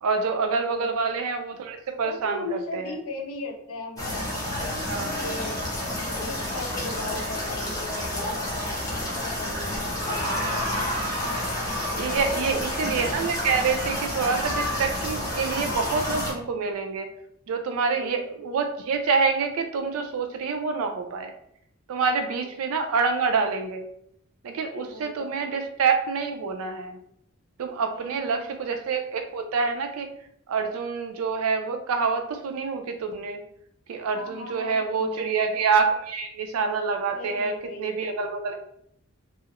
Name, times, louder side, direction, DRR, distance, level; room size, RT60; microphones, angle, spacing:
voice 1, 0.0-3.0 4.8-5.2 10.5-10.7 12.0-17.1 17.5-21.3 21.9-23.9 24.4-27.0 27.6-30.1 30.5-33.4 33.9-38.6, right 5 dB, 80° right, 6 dB, 0.4 m, -27 dB
voice 2, 0.7-1.0 1.9-4.3 5.0-5.6 6.1-8.5 9.1-10.7 12.0-12.6 17.9-18.4 22.2-22.4 24.7-25.5 27.9-28.5 34.1-35.4 37.1-37.9, left 3 dB, 85° left, 3 dB, 0.5 m, -38 dB
sound 1, 4.0-16.3, left 1 dB, 15° left, 0.5 m, -29 dB
2.3 x 2.0 x 2.9 m, 0.72 s
head